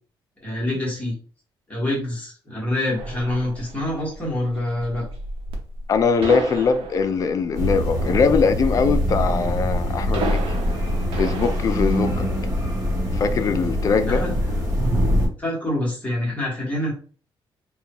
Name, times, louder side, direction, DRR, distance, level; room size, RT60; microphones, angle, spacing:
voice 1, 0.4-1.1 1.7-5.1 14.1-14.3 14.9-15.0 15.4-16.9, left 1 dB, 15° left, -4 dB, 1.3 m, -26 dB
sound 1, 3.0-11.7, right 2 dB, 80° right, 0.9 m, -33 dB
voice 2, 5.9-10.4 11.1-12.3 13.1-14.2, left 5 dB, 40° left, 9 dB, 0.4 m, -21 dB
sound 2, 7.5-15.3, equal, 35° right, 1.1 m, -23 dB
5.2 x 2.3 x 2.9 m, 0.41 s
cardioid pair, 170°, 9 cm